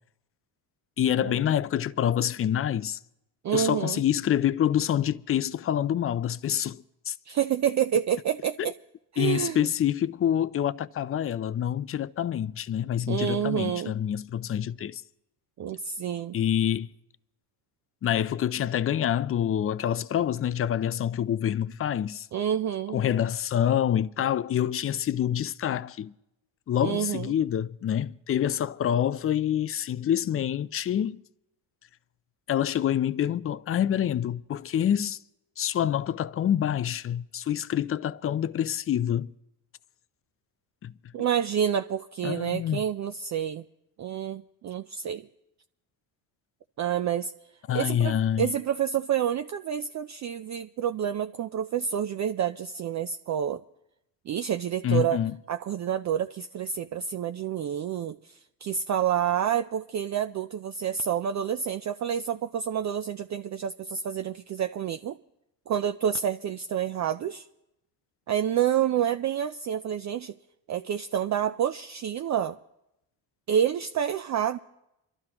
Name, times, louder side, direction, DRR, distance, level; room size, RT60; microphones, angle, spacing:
voice 1, 1.0-3.0 3.5-7.1 8.6-8.7 9.2-15.0 16.3-16.9 18.0-22.3 22.9-26.1 26.7-31.2 32.5-35.2 35.6-39.3 40.8-40.9 42.2-42.8 47.7-48.5 54.8-55.3, left 10 dB, 30° left, 0.4 m, -27 dB
voice 2, 3.4-4.0 7.3-8.7 9.1-9.7 13.1-13.9 15.6-16.4 22.3-23.0 26.8-27.3 41.1-43.6 44.0-45.3 46.8-47.3 47.7-53.6 54.3-55.2 55.5-65.2 65.7-67.5 68.3-70.3 70.7-72.6 73.5-74.6, right 9 dB, 40° right, 0.4 m, -28 dB
26.0 x 12.0 x 2.9 m
supercardioid pair, 70°, 48 cm